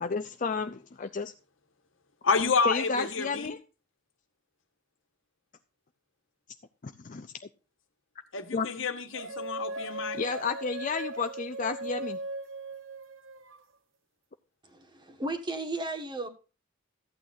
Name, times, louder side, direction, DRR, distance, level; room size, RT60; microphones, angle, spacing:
voice 1, 0.0-1.3 2.7-3.6 6.8-7.3 8.5-8.7 10.1-12.2, left 4 dB, 40° left, 7 dB, 0.5 m, -31 dB
voice 2, 2.2-3.5 8.3-10.2, left 5 dB, 70° left, 6 dB, 1.4 m, -29 dB
sound 1, 9.1-13.6, right 2 dB, 70° right, 1.0 m, -38 dB
voice 3, 14.6-16.3, right 2 dB, 25° right, 6 dB, 1.5 m, -35 dB
14.5 x 8.7 x 2.6 m, 0.32 s
head